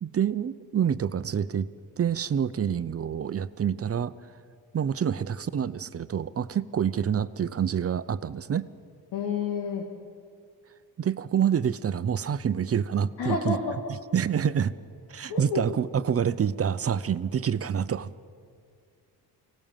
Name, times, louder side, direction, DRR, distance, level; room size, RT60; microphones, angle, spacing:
voice 1, 0.0-1.7 2.0-4.1 4.7-8.7 11.0-13.6 13.9-14.7 15.1-18.1, right 8 dB, 35° right, 14 dB, 0.7 m, -27 dB
voice 2, 9.1-9.8 13.2-13.6 15.3-15.6, left 5 dB, 90° left, -1 dB, 2.2 m, -29 dB
24.0 x 17.5 x 7.4 m, 2.2 s
cardioid pair, 85°, 41 cm